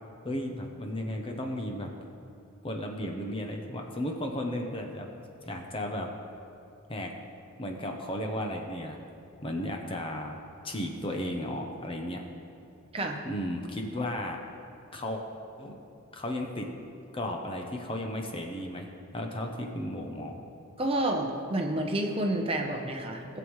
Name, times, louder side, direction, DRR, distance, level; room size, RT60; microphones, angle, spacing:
voice 1, 0.2-1.9 2.6-5.1 5.4-6.1 6.9-7.1 7.6-9.0 9.4-12.2 13.2-14.4 14.9-15.2 15.6-15.9 16.1-16.7 17.1-20.4, left 1 dB, 25° left, 3 dB, 0.7 m, -34 dB
voice 2, 20.8-23.4, right 1 dB, 25° right, 2 dB, 0.8 m, -29 dB
17.5 x 7.1 x 3.2 m, 2.7 s
head